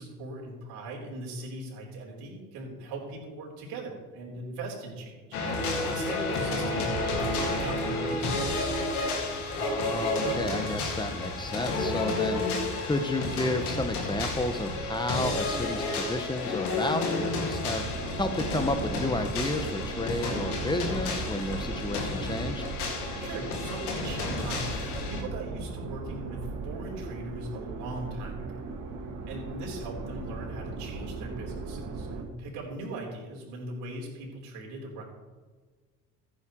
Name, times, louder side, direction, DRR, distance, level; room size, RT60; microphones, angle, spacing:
voice 1, 0.0-8.7 23.2-28.7 29.3-35.0, right 2 dB, 65° right, -2 dB, 3.8 m, -40 dB
sound 1, 5.3-25.2, left 2 dB, 85° left, 2.1 m, -31 dB
voice 2, 9.6-12.4 12.8-17.9 18.2-22.6, left 2 dB, 10° left, 8 dB, 1.3 m, -31 dB
sound 2, 17.8-32.2, right 3 dB, 45° right, 2.0 m, -38 dB
14.5 x 9.7 x 3.1 m, 1.4 s
hypercardioid pair, 60°, 43 cm